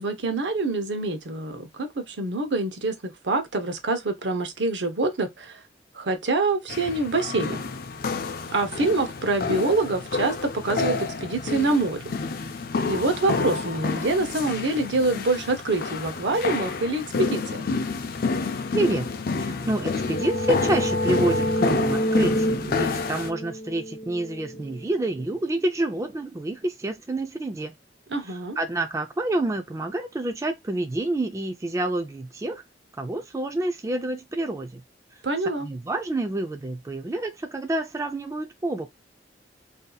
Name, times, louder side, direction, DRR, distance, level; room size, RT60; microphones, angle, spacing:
voice 1, 0.0-3.0 3.2-5.6 5.9-7.7 8.5-12.0 12.9-17.6 28.1-28.6 35.2-35.7, right 2 dB, 75° right, 0.8 m, -25 dB
sound 1, 6.7-23.3, left 4 dB, 55° left, 0.4 m, -29 dB
voice 2, 18.7-19.1 19.4-27.7 28.3-32.6 33.0-34.8 35.6-38.9, right 1 dB, 15° right, 0.3 m, -28 dB
sound 2, 19.5-25.1, equal, 85° left, 0.8 m, -28 dB
2.7 x 2.3 x 3.8 m
head